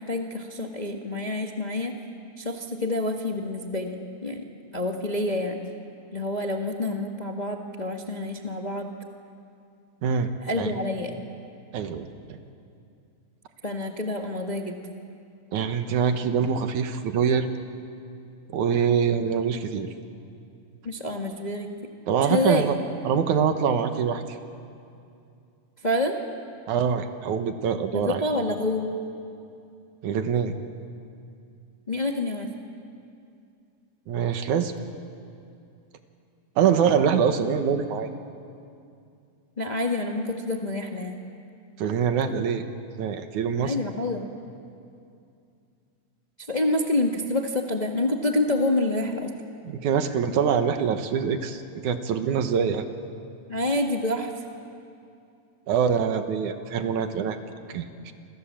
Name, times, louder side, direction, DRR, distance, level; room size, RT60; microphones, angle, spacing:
voice 1, 0.0-1.9 2.4-4.4 4.7-5.6 6.1-8.9 10.4-11.2 13.6-14.8 20.8-21.7 22.2-22.7 25.8-26.2 27.9-28.9 31.9-32.5 39.6-41.2 43.6-44.3 46.5-49.3 53.5-54.3, left 2 dB, 30° left, 2 dB, 0.8 m, -27 dB
voice 2, 11.7-12.1 15.5-17.5 18.5-19.9 22.1-22.8 23.0-24.2 26.7-28.2 30.0-30.5 34.1-34.7 36.6-38.1 41.8-42.6 43.0-43.8 49.7-52.9 55.7-57.4 57.7-58.1, right 7 dB, 80° right, 8 dB, 2.7 m, -24 dB
28.5 x 26.0 x 7.5 m, 2.5 s
omnidirectional pair, 3.4 m